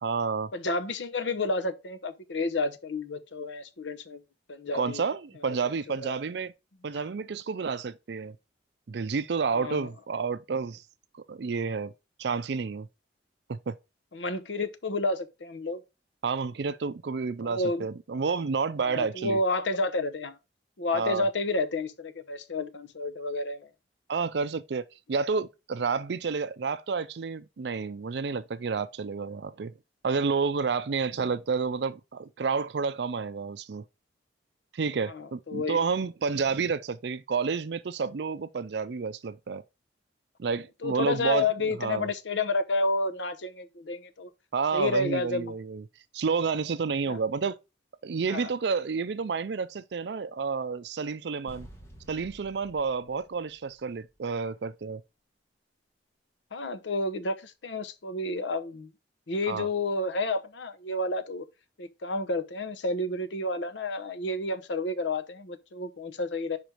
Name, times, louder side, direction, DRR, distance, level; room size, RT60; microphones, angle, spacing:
voice 1, 0.0-0.5 4.7-6.5 6.8-8.4 8.9-10.8 11.3-11.9 12.2-12.9 13.5-13.8 16.2-19.4 20.9-21.3 24.1-29.7 30.0-33.8 34.7-39.6 40.4-41.5 41.8-42.1 44.5-45.8 46.1-47.6 48.0-51.7 52.1-55.0 59.5-59.7, right 5 dB, 65° right, 0.4 m, -30 dB
voice 2, 0.5-4.2 4.5-5.1 5.5-6.1 6.9-7.1 9.5-9.9 14.1-15.8 17.4-17.9 18.8-20.4 20.8-23.7 31.2-31.3 35.1-35.8 40.8-44.3 44.7-45.5 47.1-47.2 48.3-48.5 56.5-58.9 59.3-61.5 61.8-66.6, left 2 dB, 80° left, 0.8 m, -30 dB
sound 1, 51.5-54.4, equal, 15° left, 1.3 m, -51 dB
5.1 x 4.6 x 5.0 m
head